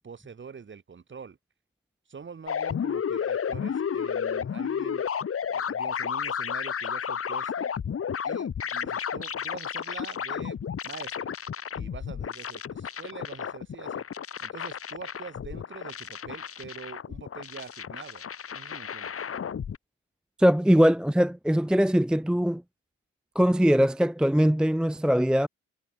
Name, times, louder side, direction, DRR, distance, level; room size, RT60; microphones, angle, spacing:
voice 1, 0.0-1.4 2.1-5.0 5.5-7.7 8.2-11.4 11.7-14.0 14.4-18.2 18.5-19.1, right 6 dB, 40° right, 6.0 m, -44 dB
sound 1, 2.5-19.8, left 7 dB, 50° left, 3.0 m, -32 dB
voice 2, 20.4-22.6 23.4-25.5, equal, 5° right, 0.6 m, -21 dB
cardioid pair, 90°, 30 cm